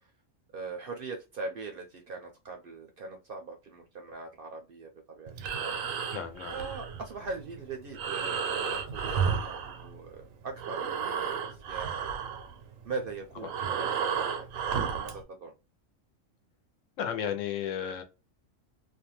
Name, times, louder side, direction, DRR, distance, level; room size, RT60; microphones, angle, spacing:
voice 1, 0.5-5.8 6.5-12.4 12.8-14.5 14.7-15.5, right 4 dB, 60° right, 0.6 m, -41 dB
Breathing, 5.3-10.3 10.5-15.2, right 7 dB, 90° right, 1.0 m, -33 dB
voice 2, 6.1-6.6 13.4-13.5 17.0-18.0, left 8 dB, 75° left, 1.0 m, -33 dB
2.5 x 2.2 x 2.9 m
omnidirectional pair, 1.3 m